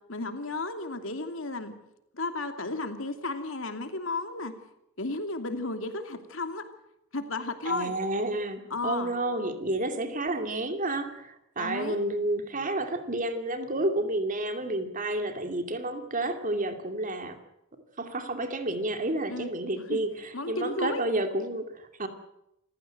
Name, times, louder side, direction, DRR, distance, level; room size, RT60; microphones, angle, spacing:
voice 1, 0.1-1.7 2.1-4.6 5.0-6.7 7.1-7.9 8.7-9.1 11.6-12.0 19.3-19.5 19.9-20.0 20.3-21.0, left 2 dB, 65° left, 7 dB, 2.8 m, -33 dB
voice 2, 7.7-17.4 18.0-22.1, right 2 dB, 40° right, 7 dB, 2.6 m, -30 dB
27.0 x 15.5 x 7.9 m, 0.82 s
head